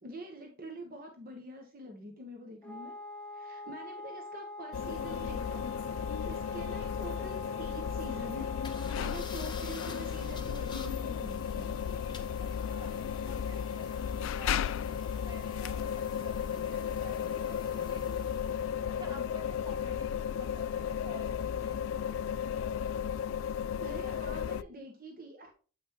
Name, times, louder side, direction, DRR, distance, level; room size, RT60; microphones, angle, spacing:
voice 1, 0.0-3.0 3.3-5.6 6.2-11.7 23.8-25.5, right 1 dB, 45° right, 3 dB, 1.1 m, -45 dB
Wind instrument woodwind instrument, 2.6-9.3, left 2 dB, 5° left, 0.6 m, -44 dB
sound 1, 4.7-24.6, left 8 dB, 75° left, 0.3 m, -34 dB
sound 2, 8.6-18.8, left 4 dB, 25° left, 1.1 m, -50 dB
voice 2, 12.4-18.5 18.9-21.8, right 2 dB, 20° right, 1 dB, 1.8 m, -52 dB
8.3 x 5.7 x 2.9 m, 0.37 s
head